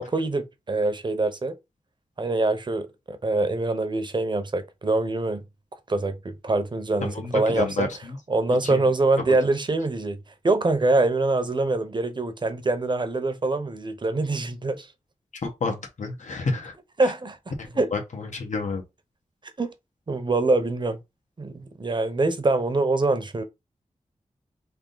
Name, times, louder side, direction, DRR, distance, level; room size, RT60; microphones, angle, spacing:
voice 1, 0.0-1.5 2.2-5.4 5.9-7.9 8.3-10.2 10.4-14.9 17.0-17.4 17.8-17.9 19.6-19.7 20.1-21.0 21.4-23.4, right 2 dB, 40° right, 0.7 m, -24 dB
voice 2, 7.0-8.2 8.6-8.9 9.3-9.4 15.4-16.7 17.0-17.1 17.6-18.8, left 4 dB, 75° left, 1.2 m, -30 dB
3.5 x 2.7 x 3.8 m
wide cardioid pair, 80°, 12 cm